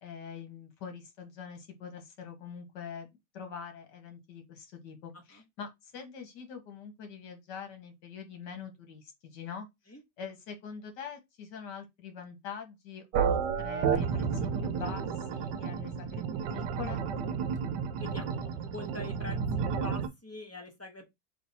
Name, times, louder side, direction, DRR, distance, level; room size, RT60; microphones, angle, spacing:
voice 1, 0.0-3.1 3.3-9.7 10.2-16.2 16.5-17.0, left 6 dB, 80° left, 1.7 m, -44 dB
sound 1, 13.1-20.1, right 6 dB, 90° right, 1.3 m, -31 dB
voice 2, 18.0-21.0, left 3 dB, 10° left, 0.7 m, -45 dB
3.3 x 3.1 x 4.1 m
omnidirectional pair, 1.8 m